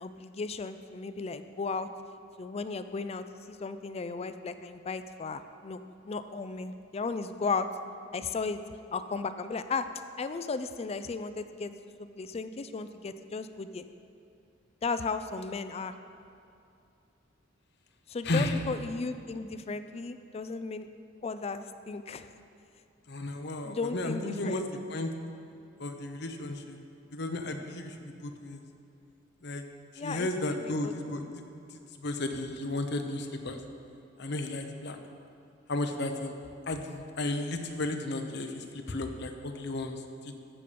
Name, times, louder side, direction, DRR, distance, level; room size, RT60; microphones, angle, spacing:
voice 1, 0.0-1.9 2.4-7.7 8.1-8.6 8.9-9.9 10.2-11.7 12.2-13.9 14.8-15.9 18.1-20.9 21.2-22.3 23.6-24.6 30.0-30.9, left 4 dB, 35° left, 10 dB, 0.4 m, -35 dB
voice 2, 18.2-18.7 23.1-25.1 25.8-26.8 27.1-28.6 29.4-29.6 30.0-31.4 31.7-33.6 34.2-35.0 35.7-36.4 36.7-40.3, left 2 dB, 60° left, 5 dB, 0.9 m, -34 dB
14.5 x 6.7 x 5.2 m, 2.6 s
head